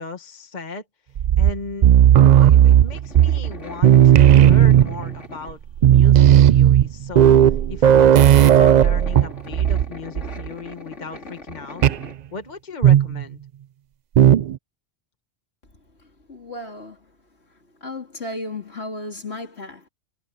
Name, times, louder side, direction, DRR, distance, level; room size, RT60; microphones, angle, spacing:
voice 1, 0.0-1.9 2.2-11.8 12.3-13.4, left 4 dB, 40° left, 1.4 m, -36 dB
sound 1, 1.2-3.6 3.8-5.1 5.5-5.6 5.8-9.9 10.2-10.5 11.8-12.1 12.8-13.2 14.2-14.6, right 10 dB, 60° right, 0.4 m, -13 dB
sound 2, 2.3-5.8 6.3-6.4 7.6-7.7 7.9-12.1, left 2 dB, 85° left, 3.1 m, -40 dB
voice 2, 16.0-17.1 17.8-19.9, left 2 dB, 65° left, 3.5 m, -34 dB
omnidirectional pair, 1.2 m